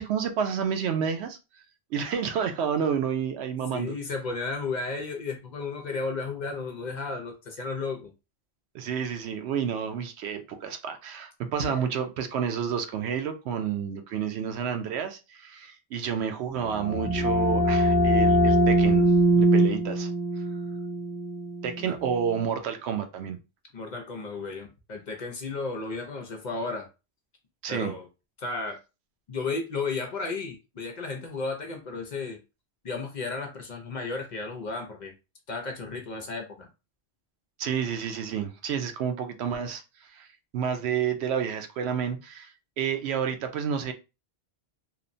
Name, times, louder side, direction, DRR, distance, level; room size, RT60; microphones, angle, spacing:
voice 1, 0.0-1.4 1.9-3.9 8.7-19.1 19.3-20.1 20.4-20.5 21.6-23.4 27.6-27.9 37.6-40.3 40.5-43.9, right 7 dB, 85° right, 0.8 m, -30 dB
voice 2, 3.7-8.1 11.7-11.9 21.8-22.0 23.7-26.9 27.7-28.1 28.4-28.8 29.3-32.4 32.8-35.1 35.5-36.7, left 4 dB, 55° left, 0.6 m, -33 dB
sound 1, 16.6-22.2, right 1 dB, 10° right, 0.5 m, -22 dB
3.0 x 2.0 x 2.5 m
omnidirectional pair, 1.1 m